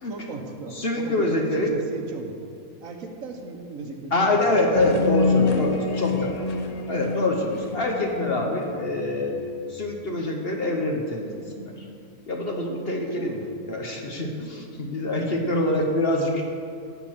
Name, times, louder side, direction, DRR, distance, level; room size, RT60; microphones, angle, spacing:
voice 1, 0.0-2.4 2.8-4.5 4.8-5.9 13.2-13.6 15.2-15.4, right 3 dB, 65° right, 4 dB, 1.3 m, -37 dB
voice 2, 0.8-1.7 4.1-6.3 6.9-9.4 9.7-11.8 12.3-13.3 13.7-16.6, left 1 dB, 45° left, 1 dB, 1.1 m, -25 dB
sound 1, 4.7-9.6, left 4 dB, 80° left, 0.3 m, -27 dB
11.0 x 4.5 x 7.7 m, 2.3 s
omnidirectional pair, 1.6 m